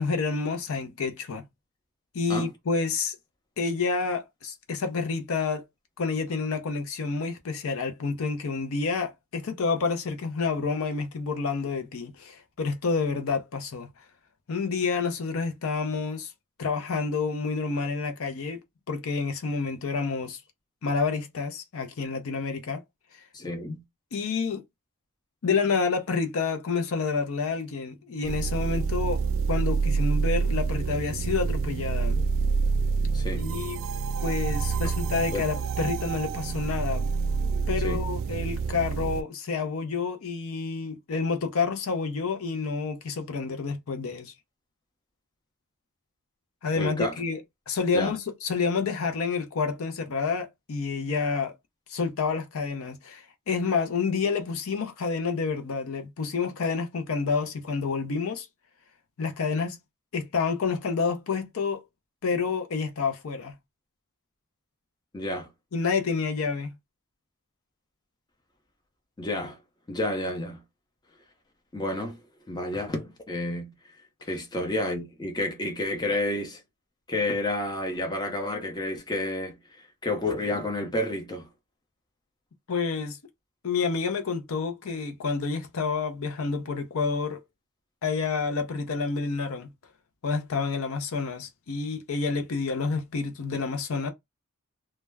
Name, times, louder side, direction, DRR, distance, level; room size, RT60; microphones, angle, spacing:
voice 1, 0.0-1.4 2.1-3.2 3.6-5.6 6.0-13.9 14.5-16.3 16.6-18.6 18.9-20.4 20.8-22.8 24.1-24.6 25.4-29.2 29.5-32.2 33.3-33.8 34.2-37.1 37.7-44.3 46.6-47.4 47.7-51.5 51.9-58.5 59.2-59.8 60.1-61.8 62.2-63.5 65.7-66.7 82.7-83.2 83.6-87.4 88.0-89.7 90.2-94.1, left 4 dB, 65° left, 0.5 m, -29 dB
voice 2, 23.3-23.8 33.1-33.5 35.3-35.4 37.8-38.1 46.8-47.2 47.9-48.1 65.1-65.5 69.2-69.6 69.9-70.6 71.7-72.2 72.5-73.7 74.2-76.6 77.1-81.5, left 1 dB, 20° left, 0.6 m, -30 dB
sound 1, 28.2-39.2, right 5 dB, 60° right, 0.3 m, -27 dB
2.2 x 2.0 x 3.3 m
head